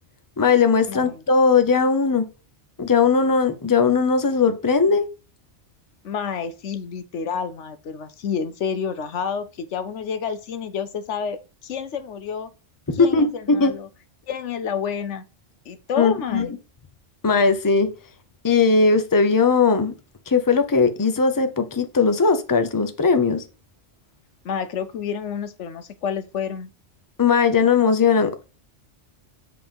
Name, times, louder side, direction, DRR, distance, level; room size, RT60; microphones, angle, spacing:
voice 1, 0.4-2.3 2.8-5.0 12.9-13.7 16.0-16.5 17.2-17.9 18.4-19.9 20.3-23.4 27.2-28.3, left 5 dB, 20° left, 0.8 m, -19 dB
voice 2, 0.9-1.2 6.0-12.5 12.9-13.9 14.3-15.2 15.7-16.6 24.4-26.7, left 7 dB, 80° left, 1.1 m, -29 dB
7.9 x 3.7 x 5.2 m
omnidirectional pair, 1.2 m